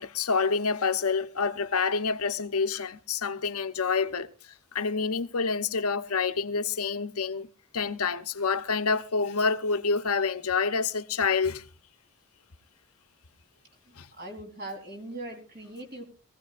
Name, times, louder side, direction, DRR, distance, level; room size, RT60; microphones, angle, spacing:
voice 1, 0.0-4.3 4.7-7.5 7.7-11.7 14.0-14.1, left 5 dB, 80° left, 1.0 m, -27 dB
voice 2, 13.9-16.1, right 1 dB, 45° right, 3.8 m, -40 dB
22.0 x 15.5 x 2.5 m
head